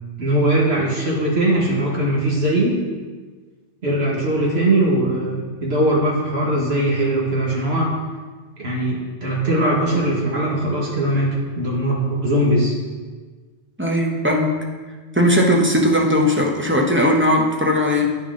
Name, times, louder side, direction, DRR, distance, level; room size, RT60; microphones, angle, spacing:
voice 1, 0.2-2.8 3.8-7.9 8.6-12.8, right 1 dB, 60° right, -3 dB, 1.8 m, -20 dB
voice 2, 13.8-14.5 15.1-18.1, left 1 dB, 10° right, -1 dB, 0.8 m, -18 dB
9.8 x 5.5 x 3.8 m, 1.4 s
omnidirectional pair, 1.2 m